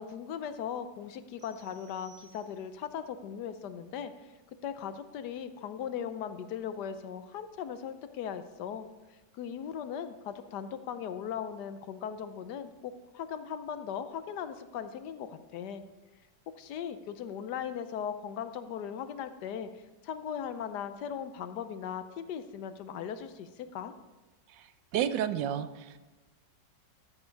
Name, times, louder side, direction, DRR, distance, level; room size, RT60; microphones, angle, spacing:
voice 1, 0.0-4.3 4.6-8.9 9.3-15.8 16.6-23.9, left 8 dB, 70° left, 11 dB, 1.2 m, -38 dB
sound 1, 1.4-2.9, right 6 dB, 40° right, 2.3 m, -60 dB
voice 2, 24.9-26.0, right 10 dB, 80° right, 12 dB, 1.3 m, -31 dB
13.0 x 7.8 x 4.5 m, 1.1 s
omnidirectional pair, 1.9 m